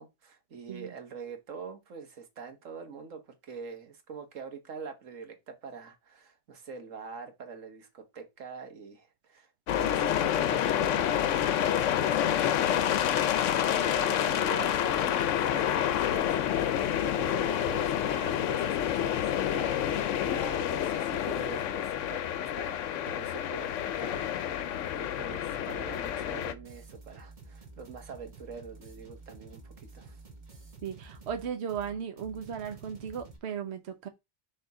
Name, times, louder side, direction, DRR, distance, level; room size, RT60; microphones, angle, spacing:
voice 1, 0.0-22.8 23.1-30.2, right 5 dB, 85° right, 1.6 m, -45 dB
sound 1, 9.7-26.5, left 10 dB, 75° left, 1.0 m, -28 dB
sound 2, 25.7-33.4, right 3 dB, 40° right, 1.4 m, -50 dB
voice 2, 30.8-34.1, right 8 dB, 60° right, 1.1 m, -36 dB
6.7 x 3.7 x 4.7 m
omnidirectional pair, 1.3 m